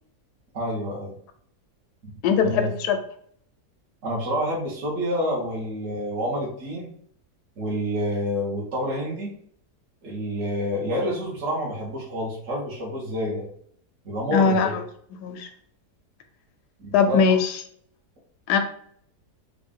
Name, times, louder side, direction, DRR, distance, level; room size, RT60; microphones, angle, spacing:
voice 1, 0.5-1.1 2.4-2.7 4.0-6.9 7.6-9.3 10.0-13.4 14.1-14.7 16.8-17.2, equal, 55° right, -5 dB, 1.3 m, -28 dB
voice 2, 2.2-3.0 14.3-14.8 15.2-15.5 16.9-17.6 18.5-18.6, left 6 dB, 85° left, 7 dB, 1.2 m, -20 dB
3.8 x 2.4 x 3.5 m, 0.62 s
omnidirectional pair, 1.7 m